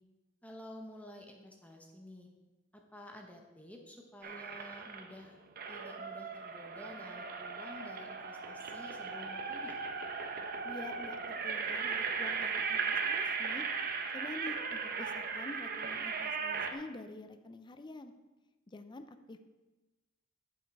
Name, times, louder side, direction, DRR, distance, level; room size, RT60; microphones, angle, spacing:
voice 1, 0.4-2.3 2.7-5.4 5.7-9.8, left 1 dB, 10° left, 1 dB, 0.9 m, -51 dB
sound 1, 4.2-5.1 5.6-16.7, right 5 dB, 50° right, 0.7 m, -37 dB
voice 2, 10.6-13.7 14.1-18.1 18.7-19.4, left 2 dB, 25° left, 9 dB, 0.4 m, -47 dB
7.4 x 7.1 x 4.7 m, 1.1 s
head